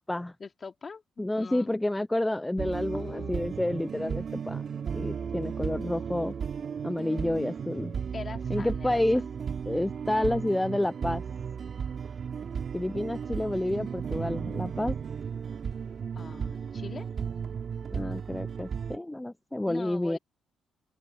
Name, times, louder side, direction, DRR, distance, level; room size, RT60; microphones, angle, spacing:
voice 1, 0.4-1.8 2.9-3.4 8.1-9.0 16.1-17.1 19.7-20.2, left 5 dB, 35° left, 2.6 m, -42 dB
voice 2, 1.2-4.6 4.9-6.3 6.8-8.0 8.5-9.2 9.7-11.2 12.7-15.0 17.9-20.2, left 1 dB, 10° left, 0.3 m, -29 dB
sound 1, 2.6-19.0, right 7 dB, 50° right, 2.5 m, -35 dB
open air
cardioid pair, 90°, 0 cm